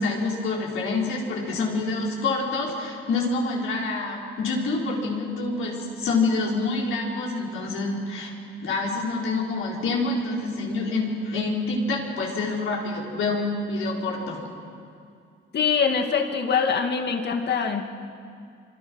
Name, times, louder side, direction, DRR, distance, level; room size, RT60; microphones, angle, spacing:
voice 1, 0.0-8.3 8.6-14.4, left 3 dB, 80° left, -2 dB, 4.7 m, -27 dB
voice 2, 15.5-17.8, left 6 dB, 55° left, 5 dB, 2.1 m, -23 dB
25.5 x 25.0 x 6.4 m, 2.4 s
cardioid pair, 105°, 21 cm